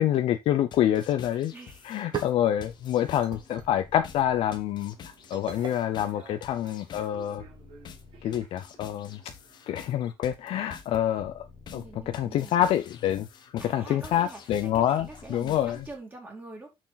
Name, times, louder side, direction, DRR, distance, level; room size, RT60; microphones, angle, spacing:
voice 1, 0.0-1.5 1.8-7.4 8.2-9.2 9.7-11.5 11.7-13.3 13.6-15.8, left 11 dB, 75° left, 0.6 m, -27 dB
sound 1, 0.7-15.9, left 6 dB, 50° left, 1.2 m, -48 dB
voice 2, 1.5-1.9 11.7-12.5 13.6-16.7, right 2 dB, 20° right, 2.7 m, -45 dB
sound 2, 1.9-7.0, right 8 dB, 50° right, 1.3 m, -43 dB
Human voice / Subway metro underground, 4.6-10.1, right 7 dB, 65° right, 3.4 m, -54 dB
6.4 x 6.2 x 4.0 m
cardioid pair, 170°, 10 cm